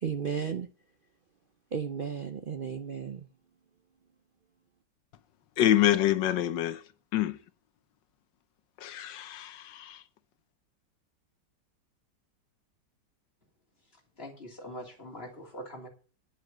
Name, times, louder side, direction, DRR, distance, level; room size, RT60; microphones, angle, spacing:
voice 1, 0.0-0.7 1.7-3.3, right 7 dB, 80° right, 0.4 m, -34 dB
voice 2, 5.6-6.8 7.1-7.4 8.8-10.0, left 12 dB, 85° left, 1.5 m, -26 dB
voice 3, 14.2-15.9, equal, 35° left, 3.4 m, -43 dB
10.0 x 7.8 x 7.4 m
omnidirectional pair, 1.9 m